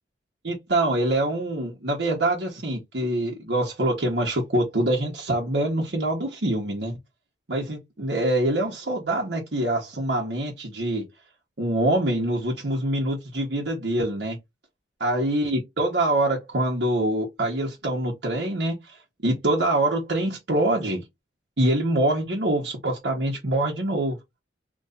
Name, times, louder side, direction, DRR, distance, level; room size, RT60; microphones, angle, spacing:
voice 1, 0.4-7.0 7.5-11.0 11.6-14.4 15.0-18.7 19.2-21.0 21.6-24.2, right 1 dB, 70° right, 1.1 m, -25 dB
3.1 x 2.6 x 3.8 m
head